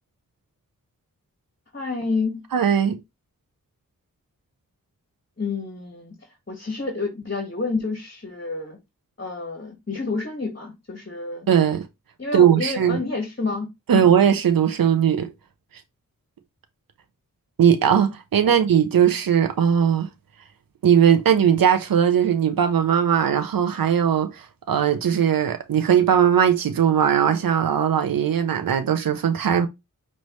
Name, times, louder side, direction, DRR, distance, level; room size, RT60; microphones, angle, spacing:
voice 1, 1.7-2.4 5.4-6.2 6.5-8.8 9.2-11.5 12.2-13.7 13.9-14.0 18.4-18.5, left 3 dB, 35° left, 1.6 m, -29 dB
voice 2, 2.5-3.0 11.5-11.9 12.3-13.0 13.9-15.3 17.6-20.1 20.8-29.7, right 8 dB, 80° right, 0.6 m, -19 dB
5.3 x 3.2 x 3.1 m
wide cardioid pair, 55°, 34 cm